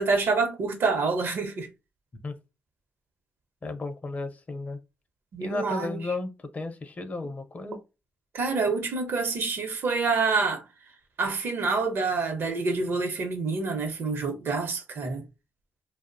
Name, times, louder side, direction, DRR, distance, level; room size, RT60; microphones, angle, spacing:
voice 1, 0.0-1.7 5.3-6.0 8.3-10.6 11.2-15.3, right 4 dB, 65° right, 0.7 m, -27 dB
voice 2, 3.6-4.8 5.4-7.8, left 3 dB, 40° left, 0.5 m, -34 dB
2.5 x 2.0 x 2.5 m
cardioid pair, 80°, 4 cm